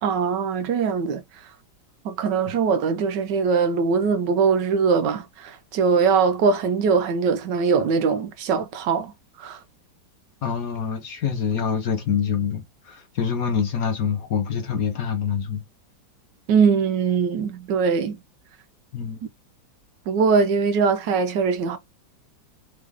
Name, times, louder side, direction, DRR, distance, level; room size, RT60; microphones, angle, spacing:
voice 1, 0.0-1.2 2.0-9.1 9.4-9.6 16.5-18.2 20.1-21.8, right 5 dB, 70° right, 1.3 m, -21 dB
voice 2, 10.4-15.6 18.9-19.2, left 7 dB, 55° left, 1.2 m, -26 dB
3.6 x 3.4 x 3.5 m
omnidirectional pair, 2.1 m